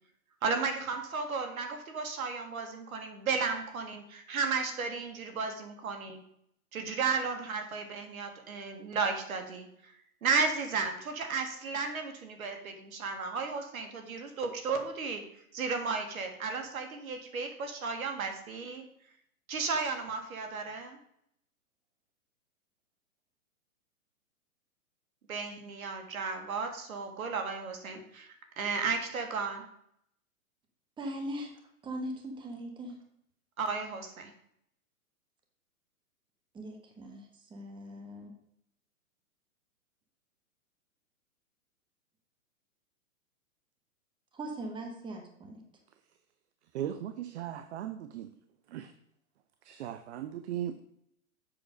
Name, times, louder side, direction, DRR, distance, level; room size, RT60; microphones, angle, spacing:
voice 1, 0.4-6.2 6.7-9.7 10.2-15.2 15.5-18.8 19.5-21.0 25.3-28.3 28.6-29.6 33.6-34.3, right 4 dB, 70° right, 5 dB, 1.9 m, -34 dB
voice 2, 31.0-33.0 36.5-38.3 44.3-45.6, right 1 dB, 10° right, 3 dB, 1.3 m, -40 dB
voice 3, 46.7-48.3 48.7-48.9 49.7-50.8, right 11 dB, 50° right, 11 dB, 0.7 m, -37 dB
7.7 x 6.2 x 5.1 m, 0.73 s
hypercardioid pair, 130°, 44 cm